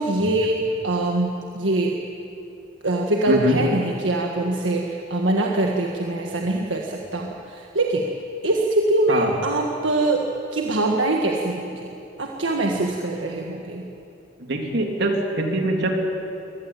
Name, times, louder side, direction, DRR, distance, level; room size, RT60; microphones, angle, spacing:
voice 1, 0.0-1.9 2.8-8.0 8.4-10.2 10.5-11.9 12.2-13.8, right 2 dB, 80° right, 0 dB, 1.7 m, -23 dB
voice 2, 3.3-3.6 9.1-9.3 14.5-16.0, right 1 dB, 65° right, 2 dB, 3.3 m, -23 dB
24.0 x 18.5 x 8.8 m, 2.8 s
head